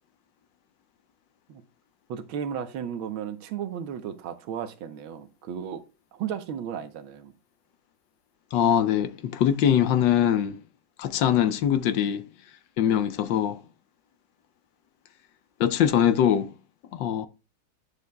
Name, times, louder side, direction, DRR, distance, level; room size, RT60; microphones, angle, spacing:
voice 1, 2.1-5.8 6.1-7.3, right 8 dB, 80° right, 1.7 m, -34 dB
voice 2, 8.5-10.6 11.0-12.2 12.8-13.6 15.6-16.5 16.9-17.3, left 9 dB, 70° left, 1.2 m, -22 dB
10.5 x 7.0 x 2.2 m
omnidirectional pair, 2.2 m